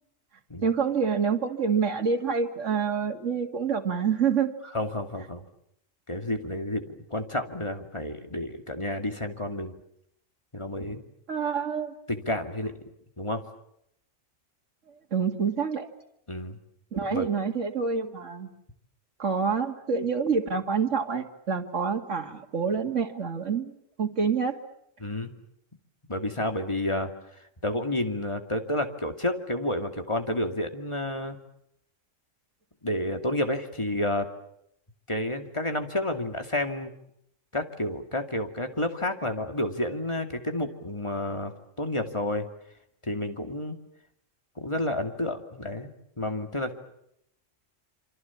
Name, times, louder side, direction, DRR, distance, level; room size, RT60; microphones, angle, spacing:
voice 1, 0.6-4.5 11.3-11.9 15.1-15.9 16.9-18.5 19.2-24.6, right 6 dB, 70° right, 4 dB, 2.5 m, -27 dB
voice 2, 4.7-5.4 6.1-9.7 10.5-11.0 12.1-12.7 13.2-13.4 16.3-16.6 17.1-17.3 25.0-25.3 26.1-27.1 27.6-31.4 32.8-34.3 35.1-36.9 37.5-42.5 43.0-43.8 44.6-45.9 46.2-46.7, left 1 dB, 20° left, 6 dB, 2.5 m, -30 dB
28.0 x 26.0 x 7.2 m, 0.75 s
omnidirectional pair, 1.3 m